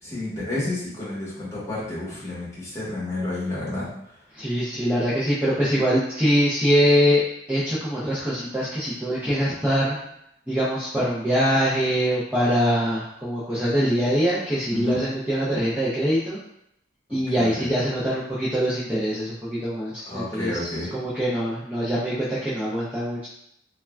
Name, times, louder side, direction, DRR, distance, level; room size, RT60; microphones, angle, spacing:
voice 1, 0.0-3.9 14.7-15.0 17.1-17.7 20.1-20.9, left 2 dB, 15° left, -9 dB, 1.1 m, -30 dB
voice 2, 4.3-10.0 10.5-16.4 17.1-23.3, equal, 5° right, -9 dB, 0.4 m, -23 dB
3.4 x 2.2 x 2.2 m, 0.75 s
head